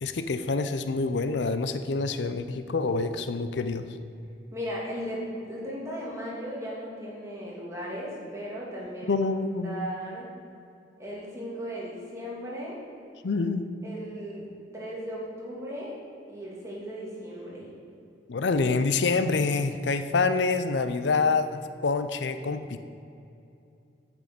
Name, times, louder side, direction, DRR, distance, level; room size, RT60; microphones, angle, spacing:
voice 1, 0.0-3.8 9.1-9.9 13.2-13.7 18.3-22.8, left 4 dB, 75° left, 10 dB, 0.5 m, -26 dB
voice 2, 4.5-5.2 5.5-9.2 9.6-10.3 11.0-12.8 13.8-14.5 14.7-15.9 16.3-17.7, equal, 15° right, -5 dB, 2.6 m, -36 dB
8.5 x 6.2 x 7.6 m, 2.7 s
head